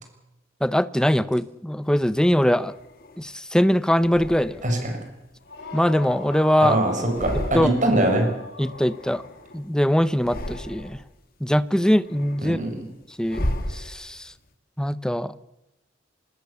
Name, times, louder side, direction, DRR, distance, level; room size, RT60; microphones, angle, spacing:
voice 1, 0.6-2.7 3.2-4.6 5.7-6.8 7.5-7.7 8.6-9.2 9.5-11.0 11.4-12.6 13.2-14.3 14.8-15.3, equal, 5° left, 15 dB, 0.8 m, -22 dB
sound 1, 2.1-3.3 3.9-4.9 5.4-6.6 6.9-8.1 8.3-9.7 10.1-11.1 11.6-14.3, left 1 dB, 50° left, 2.7 m, -35 dB
voice 2, 4.6-4.9 6.6-8.3 12.4-12.8, right 1 dB, 40° right, 4 dB, 6.3 m, -22 dB
sound 2, 5.4-9.4, left 3 dB, 70° left, 5.5 m, -39 dB
26.0 x 20.5 x 7.1 m, 0.91 s
head